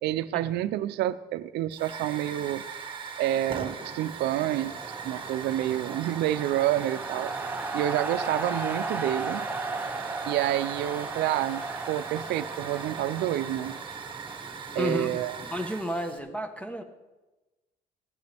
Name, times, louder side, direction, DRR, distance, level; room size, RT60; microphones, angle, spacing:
voice 1, 0.0-2.6 3.2-4.7 5.0-7.3 7.7-9.4 10.3-13.8 14.7-15.4, right 13 dB, 80° right, 13 dB, 0.6 m, -28 dB
Hiss / Fire, 1.7-16.2, right 6 dB, 30° right, 1.5 m, -40 dB
sound 1, 3.2-15.1, right 3 dB, 10° right, 1.0 m, -36 dB
voice 2, 14.8-16.8, equal, 5° left, 7 dB, 1.2 m, -32 dB
16.0 x 12.0 x 3.5 m, 1.1 s
cardioid pair, 110°, 17 cm